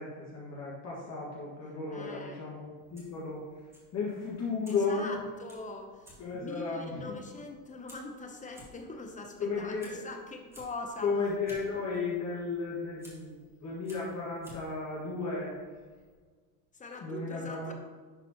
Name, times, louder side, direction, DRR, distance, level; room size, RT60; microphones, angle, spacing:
voice 1, 0.0-3.4 3.9-5.1 6.2-7.2 9.4-10.0 11.0-13.3 13.6-15.5 17.0-17.7, left 4 dB, 35° left, -6 dB, 1.9 m, -34 dB
voice 2, 1.9-2.4 4.7-9.7 10.0-11.1 16.7-17.7, left 3 dB, 15° left, 4 dB, 0.9 m, -42 dB
Fire, 2.8-16.2, equal, 5° right, 2.0 m, -58 dB
11.0 x 4.2 x 3.0 m, 1.5 s
supercardioid pair, 115°, 45 cm